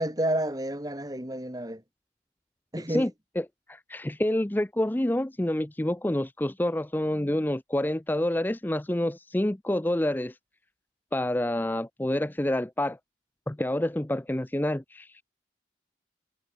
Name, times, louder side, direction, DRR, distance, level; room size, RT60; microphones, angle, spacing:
voice 1, 0.0-1.8 2.7-3.1, right 1 dB, 20° right, 3.0 m, -30 dB
voice 2, 3.4-10.4 11.1-13.0 13.5-15.2, left 1 dB, 10° left, 0.5 m, -28 dB
head